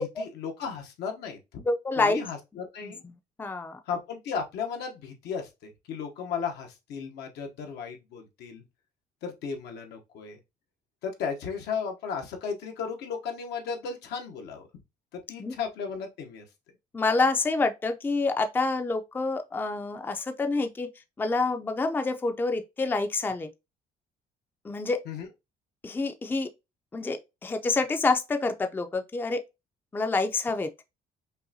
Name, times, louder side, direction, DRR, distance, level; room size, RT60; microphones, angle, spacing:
voice 1, 0.0-1.4 2.0-3.0 3.9-8.6 9.2-10.4 11.0-14.7 15.1-16.4 25.1-25.3, left 6 dB, 80° left, 1.0 m, -35 dB
voice 2, 1.6-2.2 2.8-2.9 3.4-3.8 15.4-15.6 16.9-20.9 21.2-23.5 24.6-25.0 25.8-26.5 26.9-29.4 29.9-30.7, left 3 dB, 10° left, 0.4 m, -27 dB
5.4 x 2.2 x 2.7 m
cardioid pair, 110°, 17 cm